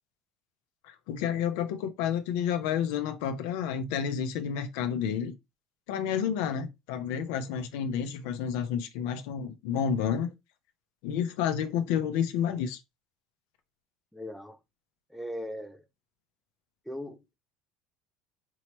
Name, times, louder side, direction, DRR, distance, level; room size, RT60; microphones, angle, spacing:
voice 1, 0.9-5.3 5.9-10.3 11.0-12.8, left 8 dB, 80° left, 0.7 m, -30 dB
voice 2, 14.1-14.6 15.1-15.9 16.8-17.3, equal, ahead, 0.7 m, -39 dB
4.6 x 3.0 x 3.0 m
supercardioid pair, 100°, 0 cm